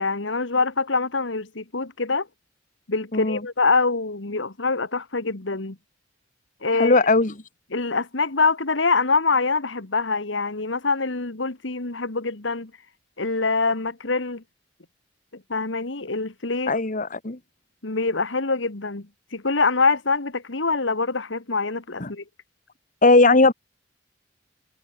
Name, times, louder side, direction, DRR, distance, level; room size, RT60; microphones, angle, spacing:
voice 1, 0.0-2.3 2.9-5.8 6.6-7.0 7.7-12.7 13.2-14.4 15.5-16.7 17.8-19.1 19.3-22.2, left 4 dB, 75° left, 1.8 m, -24 dB
voice 2, 6.8-7.3 16.7-17.4 22.0-22.1 23.0-23.5, left 3 dB, 45° left, 1.6 m, -18 dB
head